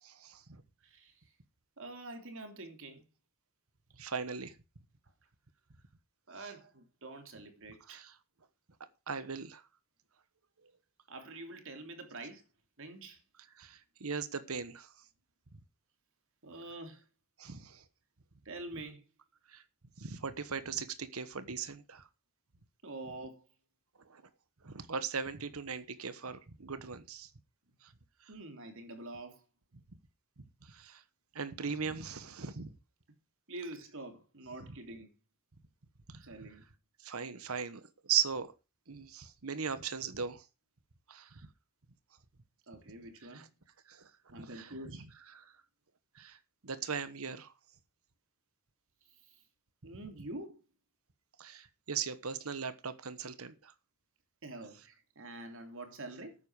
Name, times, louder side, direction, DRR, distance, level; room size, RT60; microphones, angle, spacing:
voice 1, 0.0-0.6 4.0-4.5 6.4-6.5 7.9-8.2 9.1-9.6 13.6-14.9 17.4-17.8 19.5-19.6 20.0-22.1 24.1-24.2 24.6-27.3 27.8-27.9 30.6-31.0 31.3-32.7 36.1-36.5 37.0-38.5 38.9-40.5 41.1-41.5 43.2-43.5 43.9-44.9 45.3-45.5 46.1-46.4 46.6-47.5 51.4-53.7, right 6 dB, 90° right, 1.2 m, -39 dB
voice 2, 0.8-1.1 1.8-3.0 6.3-8.0 11.1-12.4 12.8-13.2 16.4-17.0 18.4-19.0 22.8-23.4 28.3-29.4 33.5-35.1 36.2-36.6 42.7-43.5 44.3-45.1 49.8-50.6 54.4-56.4, right 2 dB, 65° right, 3.2 m, -46 dB
12.5 x 9.7 x 4.9 m
head